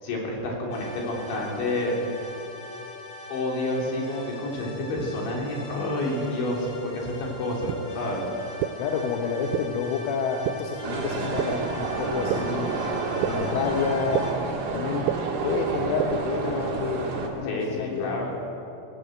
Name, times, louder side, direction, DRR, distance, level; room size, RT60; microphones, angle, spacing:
voice 1, 0.0-1.9 3.3-8.2 17.4-18.4, left 1 dB, 70° left, -1 dB, 5.7 m, -29 dB
sound 1, 0.7-14.3, left 2 dB, 40° left, 4.2 m, -42 dB
sound 2, 7.7-7.8 8.6-8.7 9.5-9.6 10.5-10.6 11.4-11.5 12.3-12.4 13.2-13.3 14.1-14.2 15.1-15.2 16.0-16.1, right 15 dB, 90° right, 3.1 m, -24 dB
voice 2, 8.8-14.3 14.7-15.1 15.4-18.4, left 5 dB, 85° left, 2 dB, 3.7 m, -29 dB
sound 3, 10.8-17.3, right 4 dB, 45° right, 2.6 m, -29 dB
18.0 x 18.0 x 8.0 m, 2.8 s
omnidirectional pair, 5.4 m